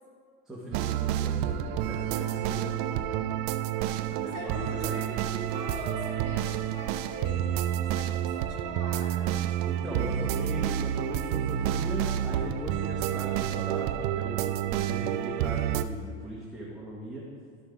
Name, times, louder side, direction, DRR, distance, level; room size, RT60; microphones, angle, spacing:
voice 1, 0.5-3.1 4.1-5.2 9.6-17.2, equal, ahead, -6 dB, 1.1 m, -39 dB
sound 1, 0.7-15.8, right 11 dB, 55° right, 0.4 m, -29 dB
voice 2, 4.3-9.4, left 1 dB, 35° left, -4 dB, 2.3 m, -42 dB
12.0 x 5.7 x 3.4 m, 2.1 s
supercardioid pair, 145°, 31 cm